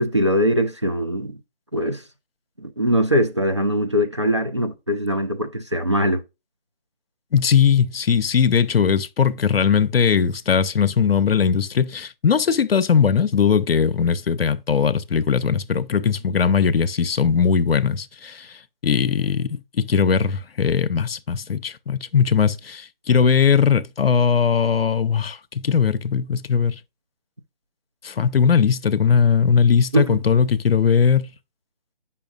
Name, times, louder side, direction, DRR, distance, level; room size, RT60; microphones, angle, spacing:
voice 1, 0.0-1.4 1.7-2.0 2.6-6.2 29.9-30.2, equal, 30° right, 0.4 m, -21 dB
voice 2, 7.3-18.6 18.8-26.8 28.0-31.3, left 6 dB, 75° left, 0.6 m, -19 dB
8.3 x 5.7 x 2.5 m
figure-of-eight pair, 155°, 29 cm